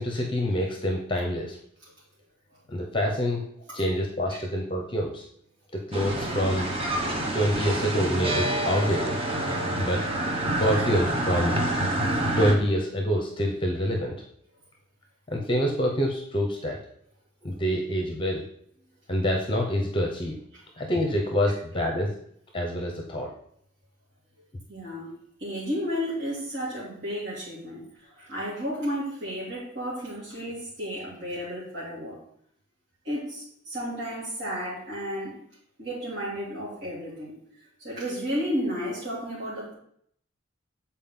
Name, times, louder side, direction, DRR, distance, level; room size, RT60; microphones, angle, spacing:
voice 1, 0.0-1.6 2.7-3.4 3.7-5.2 5.7-6.7 7.3-9.2 9.8-10.0 10.6-11.6 12.4-14.1 15.3-16.8 17.4-18.4 19.1-20.4 20.8-22.1 22.5-23.3, equal, 25° left, 1 dB, 0.8 m, -26 dB
sound 1, 5.9-12.5, right 1 dB, 30° right, 1.0 m, -27 dB
voice 2, 24.7-25.1 25.4-32.2 33.0-35.3 35.8-37.4 37.8-39.7, equal, 60° right, -9 dB, 2.6 m, -33 dB
7.4 x 4.4 x 3.7 m, 0.67 s
head